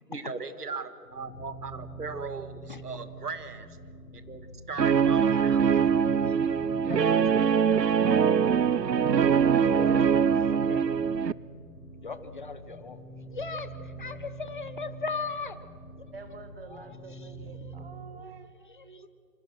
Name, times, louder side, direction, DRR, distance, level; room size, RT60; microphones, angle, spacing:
voice 1, 0.1-3.8 4.1-5.7, right 4 dB, 65° right, 12 dB, 1.9 m, -38 dB
sound 1, 1.0-18.0, right 2 dB, 70° left, 4.9 m, -44 dB
Guitar, 4.8-11.3, right 7 dB, 90° right, 0.8 m, -23 dB
voice 2, 5.3-6.4 6.8-8.4 10.5-10.8 12.0-13.0 13.3-13.7 14.0-15.6 16.7-16.8 18.7-19.1, left 4 dB, 30° left, 12 dB, 1.0 m, -38 dB
voice 3, 9.4-10.0 16.1-19.1, right 3 dB, 35° right, 8 dB, 2.1 m, -43 dB
26.5 x 25.0 x 6.2 m, 2.5 s
figure-of-eight pair, 160°, 49 cm